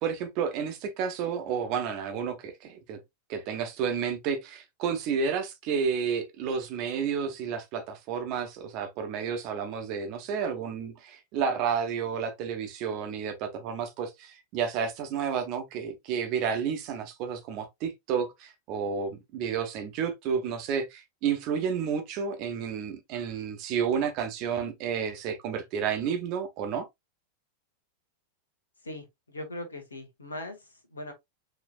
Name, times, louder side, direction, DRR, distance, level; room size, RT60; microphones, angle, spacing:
voice 1, 0.0-3.0 3.3-26.9, right 7 dB, 40° right, 1.1 m, -31 dB
voice 2, 28.8-31.1, left 1 dB, 75° left, 1.2 m, -40 dB
5.2 x 3.2 x 2.4 m
figure-of-eight pair, 90°, 0 cm